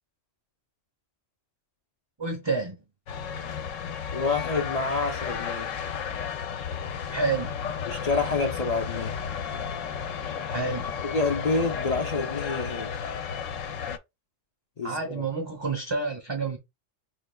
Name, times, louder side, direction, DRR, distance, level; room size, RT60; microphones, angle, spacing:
voice 1, 2.2-2.8 7.1-7.5 10.5-10.8 14.8-16.6, right 4 dB, 25° right, 0.7 m, -29 dB
sound 1, 3.1-14.0, left 7 dB, 90° left, 1.0 m, -33 dB
voice 2, 4.1-5.7 7.9-9.1 11.0-12.9 14.8-15.2, left 3 dB, 45° left, 0.5 m, -28 dB
5.1 x 3.2 x 2.2 m
omnidirectional pair, 1.3 m